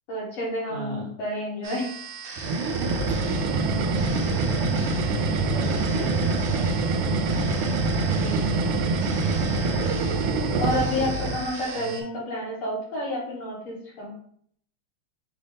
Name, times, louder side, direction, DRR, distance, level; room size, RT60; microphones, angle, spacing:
voice 1, 0.1-1.8 8.1-8.5 9.7-14.1, left 1 dB, 75° left, -4 dB, 2.4 m, -30 dB
voice 2, 0.7-1.1 3.8-7.3 7.8-8.7 11.7-12.0, equal, 40° left, -5 dB, 1.3 m, -40 dB
sound 1, 1.6-12.0, right 4 dB, 60° right, 1.2 m, -39 dB
sound 2, 2.4-11.5, right 3 dB, 80° right, 1.4 m, -25 dB
5.4 x 2.6 x 3.4 m, 0.63 s
omnidirectional pair, 2.4 m